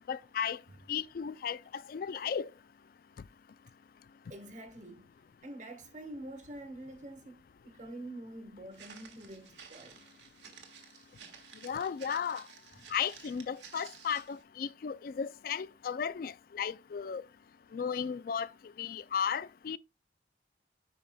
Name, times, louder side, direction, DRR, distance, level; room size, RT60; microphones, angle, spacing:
voice 1, 0.1-0.6 0.9-2.5 11.6-12.4 12.9-17.2 17.7-18.5 18.8-19.8, left 7 dB, 50° left, 0.3 m, -35 dB
voice 2, 4.3-5.1 5.4-10.0 12.7-12.9, right 1 dB, 45° right, 1.3 m, -46 dB
Walk footsteps, 8.7-14.4, right 7 dB, 80° right, 1.5 m, -53 dB
9.4 x 5.6 x 2.2 m
head